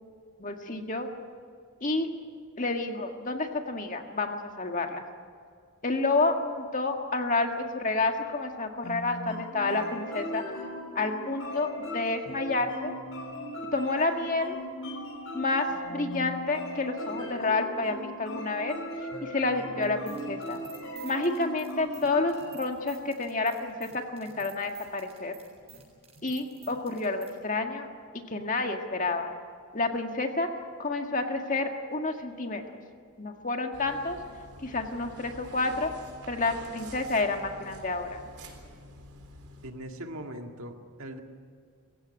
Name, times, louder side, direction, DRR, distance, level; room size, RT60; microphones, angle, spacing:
voice 1, 0.4-1.1 1.8-2.1 2.6-5.1 5.8-10.4 11.0-12.9 13.7-14.6 15.3-18.8 19.2-20.6 21.0-25.3 26.2-27.9 28.3-29.3 29.7-30.5 30.8-32.6 33.2-34.2 34.6-35.9 36.3-38.2, left 3 dB, 35° left, 4 dB, 1.8 m, -29 dB
sound 1, 8.8-22.5, equal, 60° left, 4.8 m, -38 dB
sound 2, 19.8-27.3, right 7 dB, 30° right, 7.4 m, -51 dB
sound 3, 33.7-39.7, right 1 dB, 90° right, 3.8 m, -48 dB
voice 2, 39.6-41.2, right 1 dB, 65° right, 4 dB, 1.9 m, -40 dB
23.0 x 16.0 x 9.6 m, 2.1 s
head